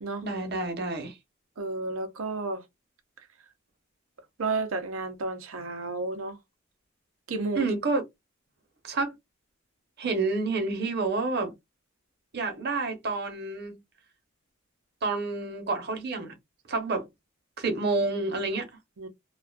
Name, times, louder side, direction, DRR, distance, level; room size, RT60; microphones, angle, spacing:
voice 1, 0.2-1.2 7.5-8.0 8.8-9.1 10.0-11.5 12.3-13.8 15.0-16.4 16.7-17.1 17.6-18.7, right 3 dB, 55° right, 0.8 m, -29 dB
voice 2, 1.6-2.6 4.4-6.4 7.3-7.8 19.0-19.1, right 3 dB, 90° right, 0.6 m, -32 dB
2.5 x 2.3 x 2.2 m
head